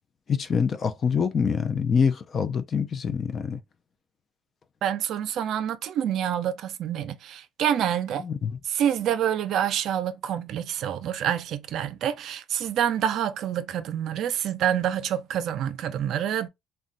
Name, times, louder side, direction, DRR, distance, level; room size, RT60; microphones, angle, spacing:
voice 1, 0.3-3.6 8.2-8.6, left 6 dB, 35° left, 0.4 m, -25 dB
voice 2, 4.8-8.2 8.7-16.5, right 10 dB, 60° right, 0.4 m, -27 dB
3.8 x 2.2 x 2.4 m
cardioid pair, 140°, 0 cm